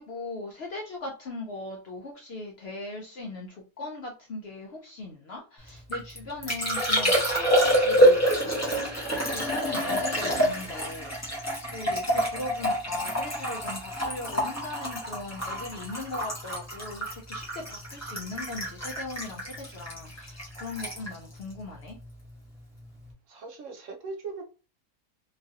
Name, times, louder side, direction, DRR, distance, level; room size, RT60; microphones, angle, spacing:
voice 1, 0.0-22.0, left 2 dB, 65° left, 0.6 m, -39 dB
Liquid, 5.7-22.3 22.6-23.1, equal, 15° left, 0.7 m, -27 dB
voice 2, 23.3-24.4, right 4 dB, 70° right, 0.8 m, -39 dB
3.0 x 2.4 x 2.7 m
omnidirectional pair, 1.6 m